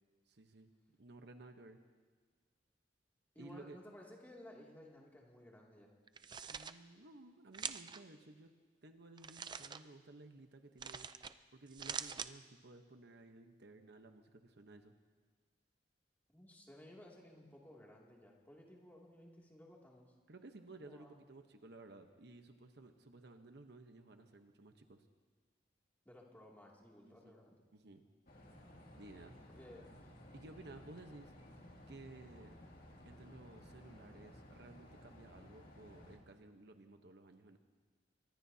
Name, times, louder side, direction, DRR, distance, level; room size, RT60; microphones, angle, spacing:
voice 1, 0.3-0.7 1.0-1.8 3.4-3.8 6.5-8.5 8.8-14.9 20.3-25.1 27.1-27.4 27.7-28.1 28.9-29.3 30.3-31.3 31.9-32.5 33.1-37.6, right 2 dB, 65° right, 6 dB, 1.0 m, -56 dB
voice 2, 3.3-5.9 16.3-20.1 20.8-21.2 26.0-27.6 29.5-29.9, left 1 dB, 10° left, -3 dB, 2.5 m, -57 dB
sound 1, 6.1-6.7 7.5-8.0 9.2-9.8 10.8-11.3 11.7-12.3, right 6 dB, 25° right, 0.4 m, -44 dB
sound 2, 28.3-36.2, left 1 dB, 55° left, 2.5 m, -57 dB
24.5 x 21.0 x 2.8 m, 1.5 s
head